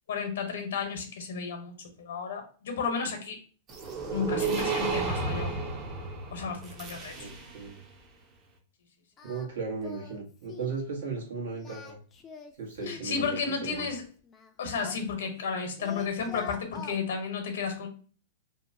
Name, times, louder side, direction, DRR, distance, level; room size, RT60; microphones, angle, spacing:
voice 1, 0.1-3.4 4.1-5.5 6.3-7.1 12.9-14.0 14.6-17.9, left 5 dB, 80° left, 5 dB, 0.8 m, -33 dB
sound 1, 3.7-7.7, right 4 dB, 30° right, 0.6 m, -32 dB
voice 2, 7.2-7.8 9.2-12.0 12.6-13.9, right 4 dB, 80° right, -2 dB, 1.1 m, -36 dB
Singing, 9.2-9.5 9.8-10.2 10.5-10.8 11.5-13.1 13.7-15.5 15.8-17.0, left 6 dB, 20° left, 0.4 m, -45 dB
2.7 x 2.1 x 2.6 m, 0.41 s
hypercardioid pair, 140°, 0 cm